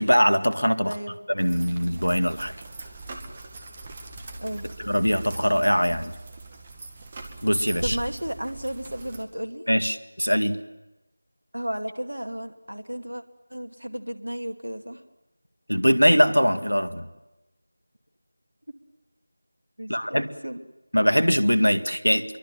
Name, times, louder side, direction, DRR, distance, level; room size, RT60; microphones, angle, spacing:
voice 1, 0.0-0.9 1.3-2.5 4.8-6.1 7.4-8.0 9.7-10.6 15.7-17.0 19.9-20.3 20.9-22.2, equal, 85° left, 10 dB, 2.0 m, -22 dB
voice 2, 0.9-1.2 4.4-4.7 7.8-9.6 11.5-13.2 13.5-15.0 19.8-20.6, equal, 75° right, 6 dB, 2.4 m, -33 dB
sound 1, 1.4-9.2, right 2 dB, 25° right, 2.0 m, -40 dB
27.0 x 23.5 x 7.6 m, 0.99 s
figure-of-eight pair, 170°, 0 cm